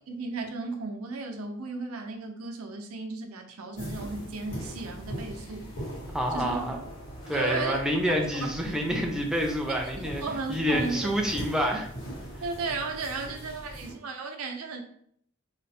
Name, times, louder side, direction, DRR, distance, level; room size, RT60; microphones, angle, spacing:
voice 1, 0.1-5.7 6.3-6.7 7.3-7.8 8.1-8.2 10.2-11.0 12.4-14.8, right 3 dB, 85° right, 4 dB, 0.6 m, -34 dB
sound 1, 3.8-13.9, equal, 75° left, 1.5 m, -40 dB
voice 2, 6.1-6.8 7.3-10.2 10.5-11.9, equal, 5° right, 0 dB, 0.4 m, -28 dB
3.2 x 2.0 x 4.2 m, 0.64 s
head